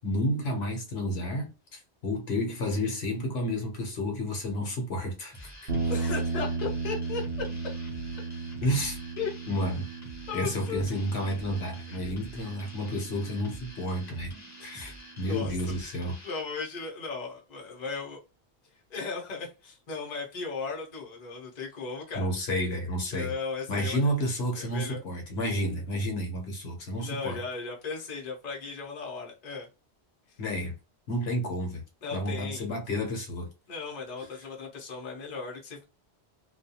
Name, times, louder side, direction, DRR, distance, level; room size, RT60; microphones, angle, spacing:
voice 1, 0.0-5.5 8.6-9.0 9.5-9.9 10.3-14.3 14.6-16.2 22.1-23.3 23.7-27.4 30.4-30.7 31.1-31.8 32.1-33.5, equal, 70° left, 1.1 m, -31 dB
sound 1, 5.3-16.4, equal, 20° left, 0.5 m, -48 dB
sound 2, 5.7-14.0, right 4 dB, 70° right, 0.9 m, -35 dB
voice 2, 5.9-7.5 9.2-9.3 10.3-10.8 11.9-12.1 15.2-15.8 16.2-18.2 18.9-22.3 23.1-24.0 24.6-25.0 27.0-29.7 32.0-32.7 33.7-35.8, left 4 dB, 45° left, 0.8 m, -36 dB
2.4 x 2.3 x 2.7 m
omnidirectional pair, 1.1 m